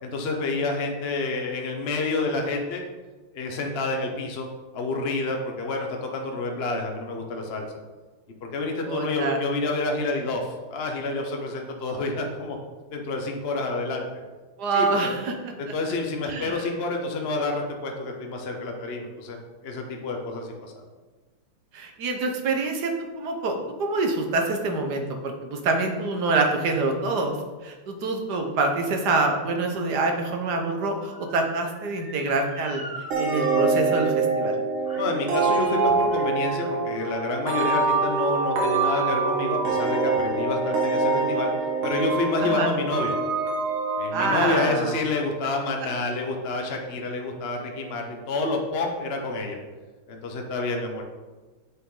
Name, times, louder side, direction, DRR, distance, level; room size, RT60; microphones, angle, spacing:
voice 1, 0.0-2.8 3.3-4.5 4.7-7.8 8.5-12.6 12.9-14.1 14.7-15.2 15.6-20.7 34.9-41.5 41.8-43.1 44.0-49.6 50.1-51.0, left 3 dB, 40° left, 1 dB, 0.9 m, -28 dB
voice 2, 8.9-9.4 14.6-15.5 16.3-16.6 21.7-27.4 27.6-32.8 33.2-34.5 42.4-42.8 44.1-44.9, right 3 dB, 55° right, 3 dB, 1.5 m, -26 dB
Motor vehicle (road) / Siren, 28.5-33.6 33.9-34.0 34.8-35.2 35.5-37.2 37.9-38.0, right 1 dB, 15° right, 1.9 m, -42 dB
sound 1, 33.1-45.5, right 3 dB, 75° right, 2.2 m, -25 dB
8.6 x 7.5 x 3.9 m, 1.3 s
omnidirectional pair, 2.4 m